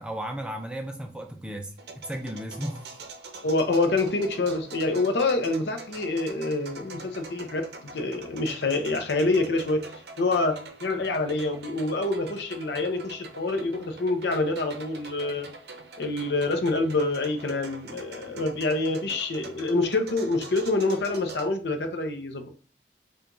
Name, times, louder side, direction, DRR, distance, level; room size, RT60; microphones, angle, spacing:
voice 1, 0.0-3.0, equal, 5° right, 0.4 m, -35 dB
sound 1, 1.8-21.5, right 3 dB, 65° right, 0.6 m, -44 dB
voice 2, 3.4-9.8 10.2-15.5 16.0-22.5, left 2 dB, 75° left, 0.6 m, -26 dB
4.6 x 2.4 x 2.6 m
head